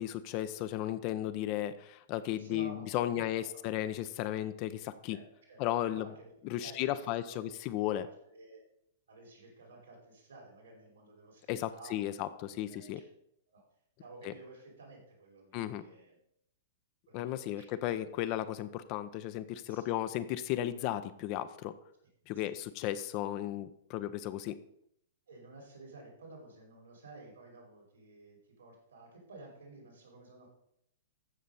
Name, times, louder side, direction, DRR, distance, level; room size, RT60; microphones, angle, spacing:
voice 1, 0.0-5.2 5.6-6.1 6.4-8.1 11.5-13.0 14.2-14.3 15.5-15.8 17.1-21.7 22.3-24.6, left 13 dB, 40° left, 12 dB, 0.7 m, -35 dB
voice 2, 2.4-3.5 5.1-5.6 5.9-7.5 8.0-8.6 9.1-11.4 11.7-13.1 13.5-13.6 14.0-16.2 17.1-17.8 19.7-19.8 22.3-22.5 25.3-30.5, right 2 dB, 80° right, -1 dB, 4.9 m, -53 dB
14.0 x 6.4 x 4.2 m, 0.74 s
figure-of-eight pair, 105°, 0 cm